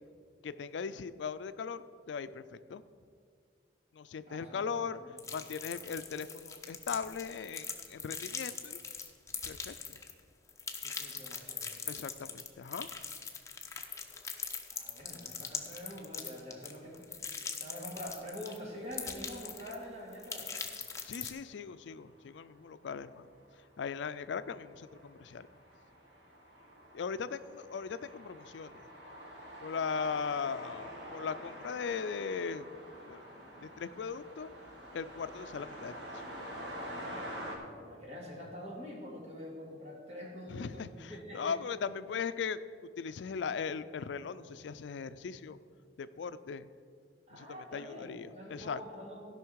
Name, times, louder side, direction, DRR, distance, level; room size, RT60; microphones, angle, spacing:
voice 1, 0.4-2.4 2.7-2.8 3.9-8.8 9.5-10.0 11.9-12.9 21.0-23.3 23.8-25.5 26.9-28.8 29.6-32.7 33.0-33.2 33.6-34.6 34.9-36.2 40.5-42.6 43.0-45.6 46.0-46.7 47.3-48.8, left 6 dB, 80° left, 13 dB, 0.4 m, -39 dB
voice 2, 4.3-5.1 10.8-12.0 14.7-17.2 17.5-20.6 37.5-41.6 47.3-49.3, equal, 40° right, -3 dB, 2.7 m, -46 dB
sound 1, 5.2-10.2 10.5-18.6 18.9-19.8 20.1-21.3, left 5 dB, 15° left, 0.8 m, -41 dB
sound 2, 19.2-19.5 20.1-21.1 21.5-21.6 22.0-37.6, equal, 75° right, 2.0 m, -47 dB
16.0 x 5.7 x 4.7 m, 2.2 s
head